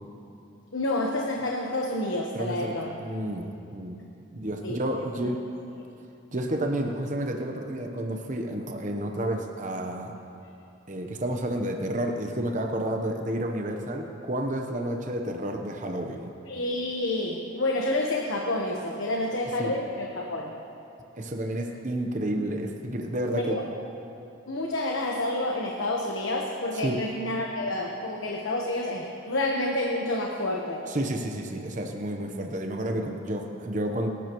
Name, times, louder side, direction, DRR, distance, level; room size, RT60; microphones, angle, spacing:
voice 1, 0.7-3.0 4.6-4.8 16.4-20.5 23.4-23.6 24.5-30.8, left 1 dB, 75° left, -1 dB, 1.2 m, -29 dB
voice 2, 2.3-4.0 4.3-5.4 6.3-10.1 10.9-16.3 19.6-19.7 21.2-23.6 26.8-27.0 30.9-34.1, right 1 dB, 40° right, 3 dB, 1.0 m, -30 dB
25.0 x 12.0 x 3.1 m, 2.7 s
head